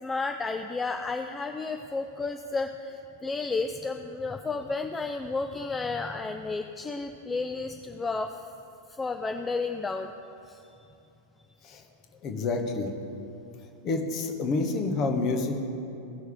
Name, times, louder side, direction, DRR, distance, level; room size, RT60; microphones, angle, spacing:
voice 1, 0.0-8.4 9.0-10.1 10.5-10.6, left 3 dB, 15° left, 6 dB, 0.4 m, -32 dB
voice 2, 12.2-12.9 13.8-15.6, left 3 dB, 35° left, 4 dB, 1.2 m, -28 dB
17.0 x 6.2 x 3.6 m, 2.8 s
figure-of-eight pair, 90°, 0 cm